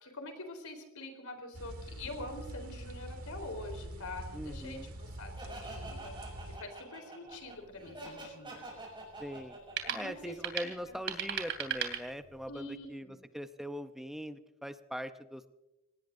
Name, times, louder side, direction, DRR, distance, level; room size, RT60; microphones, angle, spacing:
voice 1, 0.0-6.2 6.5-8.8 9.8-10.4 10.9-11.0 12.5-13.2, left 2 dB, 85° left, 5 dB, 3.8 m, -45 dB
sound 1, 1.5-6.6, right 1 dB, 80° right, 1.9 m, -45 dB
voice 2, 4.3-4.9 9.2-9.6 9.9-13.1 13.3-15.5, equal, ahead, 9 dB, 0.6 m, -41 dB
Laughter, 5.4-11.0, right 2 dB, 25° right, 6.9 m, -47 dB
sound 2, 7.3-12.6, right 8 dB, 55° right, 2.9 m, -40 dB
28.0 x 18.5 x 2.6 m, 0.97 s
head